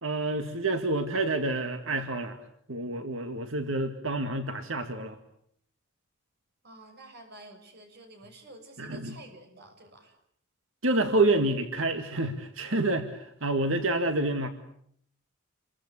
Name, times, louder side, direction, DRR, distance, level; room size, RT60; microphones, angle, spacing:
voice 1, 0.0-2.4 2.7-5.2 8.8-9.2 10.8-14.5, right 2 dB, 70° right, 7 dB, 2.1 m, -28 dB
voice 2, 6.6-10.2, right 2 dB, 55° right, 6 dB, 6.3 m, -50 dB
29.5 x 23.5 x 8.4 m, 0.67 s
head